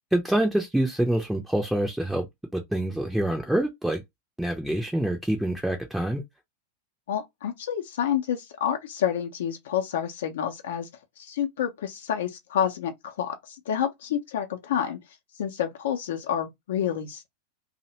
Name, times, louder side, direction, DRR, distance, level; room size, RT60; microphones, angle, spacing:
voice 1, 0.1-2.3 2.5-4.0 4.4-6.2, right 1 dB, 5° right, 0.5 m, -26 dB
voice 2, 7.1-10.9 11.2-15.0 15.4-17.3, left 9 dB, 60° left, 0.5 m, -29 dB
2.6 x 2.0 x 2.8 m
figure-of-eight pair, 90°, 0 cm